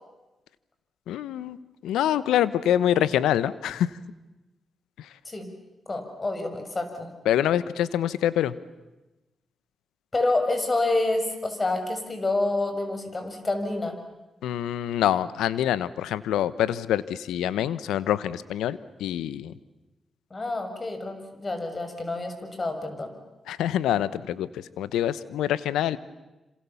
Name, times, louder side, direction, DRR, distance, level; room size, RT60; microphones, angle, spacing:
voice 1, 1.1-1.6 1.8-3.9 5.0-5.1 7.2-8.5 14.4-19.5 23.5-26.0, left 11 dB, 85° left, 17 dB, 0.9 m, -25 dB
voice 2, 5.9-7.1 10.1-14.0 20.3-23.1, left 2 dB, 35° left, 7 dB, 6.6 m, -28 dB
27.5 x 27.0 x 7.1 m, 1.0 s
supercardioid pair, 50°, 0 cm